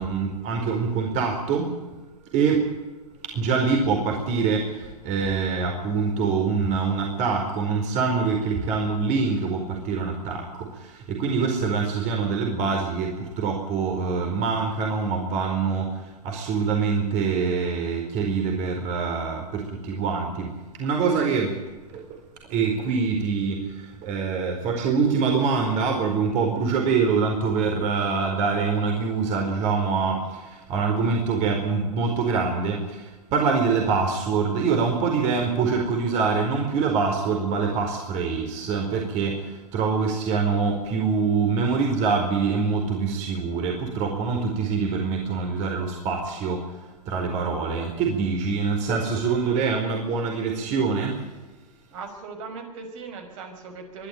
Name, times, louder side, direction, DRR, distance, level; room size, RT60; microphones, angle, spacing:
voice 1, 0.0-1.7 2.3-2.6 3.3-21.5 21.9-22.0 22.5-46.7 47.1-51.2, right 5 dB, 35° right, 2 dB, 4.5 m, -25 dB
voice 2, 51.9-54.1, right 4 dB, 55° right, 5 dB, 5.5 m, -38 dB
23.5 x 12.0 x 9.2 m, 1.2 s
hypercardioid pair, 120°, 20 cm